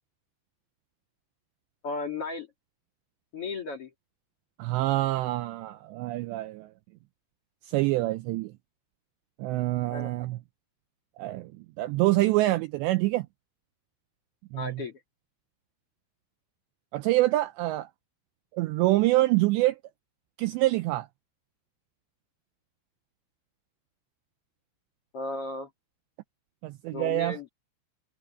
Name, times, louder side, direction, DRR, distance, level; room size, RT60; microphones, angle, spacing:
voice 1, 1.8-2.5 3.3-3.9 9.9-10.1 14.5-15.0 25.1-25.7 26.9-27.5, left 3 dB, 40° left, 2.3 m, -35 dB
voice 2, 4.6-6.7 7.6-8.5 9.4-10.4 11.2-11.5 11.8-13.3 14.5-14.8 16.9-17.9 18.5-19.8 20.4-21.1 26.6-27.4, right 18 dB, 90° right, 2.5 m, -26 dB
omnidirectional pair, 5.7 m